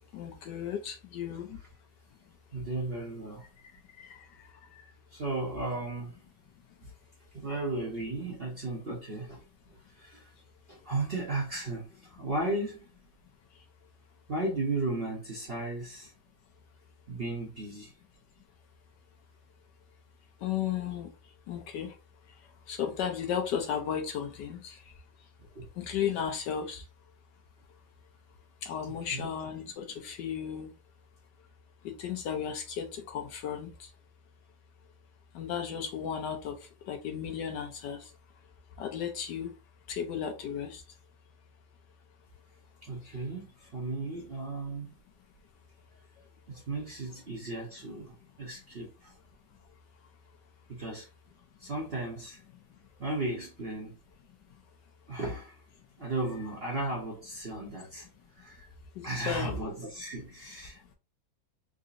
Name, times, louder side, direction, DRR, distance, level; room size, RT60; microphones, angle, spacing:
voice 1, 0.1-1.6 4.0-4.2 20.4-21.1 21.5-21.9 22.7-24.8 25.8-26.8 28.6-30.7 31.8-33.7 35.3-36.6 36.9-38.0 38.8-39.5 39.9-40.8 59.0-59.7, left 8 dB, 70° left, 1.2 m, -34 dB
voice 2, 2.5-3.5 5.1-6.2 6.8-6.9 7.3-9.4 9.7-10.3 10.7-12.8 14.3-16.1 17.1-17.9 25.5-25.7 29.1-29.3 42.8-44.9 46.5-49.1 50.7-51.1 51.6-52.4 53.0-54.0 55.1-55.6 56.0-58.1 58.3-58.7 59.0-60.9, right 2 dB, 45° right, 0.8 m, -35 dB
3.8 x 2.7 x 2.5 m
omnidirectional pair, 2.1 m